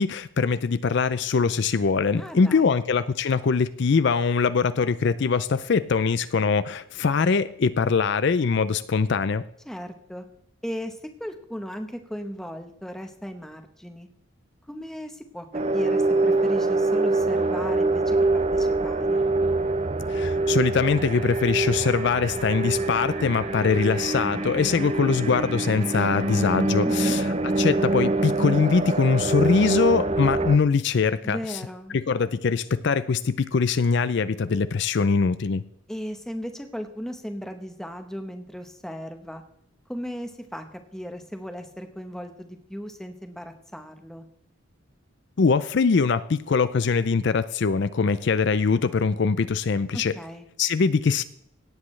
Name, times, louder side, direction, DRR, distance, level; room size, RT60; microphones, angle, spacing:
voice 1, 0.0-9.4 20.1-27.3 27.6-31.6 31.9-35.6 45.4-50.1 50.6-51.2, left 5 dB, 55° left, 14 dB, 0.4 m, -22 dB
voice 2, 2.2-2.8 9.6-10.2 10.6-14.1 14.7-15.5 15.7-19.3 26.8-27.2 31.2-32.0 35.9-39.4 39.9-44.3 49.9-50.5, equal, ahead, 6 dB, 1.0 m, -36 dB
sound 1, 15.5-30.6, right 2 dB, 30° right, 0.6 m, -25 dB
17.5 x 8.3 x 3.2 m, 0.72 s
head